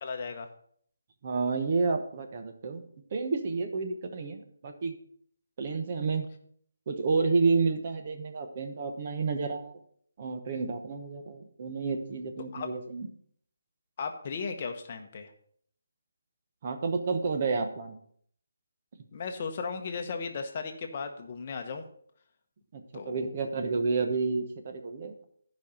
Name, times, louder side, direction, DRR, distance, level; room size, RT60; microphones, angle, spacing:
voice 1, 0.0-0.5 12.5-12.7 14.0-15.3 19.1-21.9 22.9-23.3, left 5 dB, 30° left, 5 dB, 1.0 m, -36 dB
voice 2, 1.2-2.8 3.1-5.0 5.6-6.3 6.9-9.8 10.2-13.1 16.6-18.0 22.7-25.2, right 4 dB, 30° right, 6 dB, 1.0 m, -30 dB
11.5 x 5.3 x 5.2 m, 0.63 s
hypercardioid pair, 175°, 0 cm